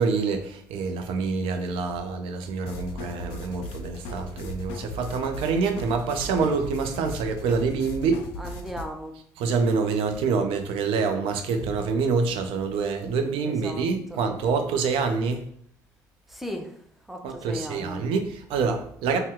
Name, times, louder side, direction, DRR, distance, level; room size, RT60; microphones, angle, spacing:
voice 1, 0.0-8.2 9.4-15.5 17.2-19.2, right 5 dB, 70° right, 0.5 m, -26 dB
sound 1, 2.7-8.8, left 2 dB, 75° left, 0.4 m, -37 dB
voice 2, 8.4-9.2 13.4-14.2 16.3-16.7 17.1-18.1, equal, ahead, 0.6 m, -37 dB
2.7 x 2.1 x 3.6 m
hypercardioid pair, 55°, 10 cm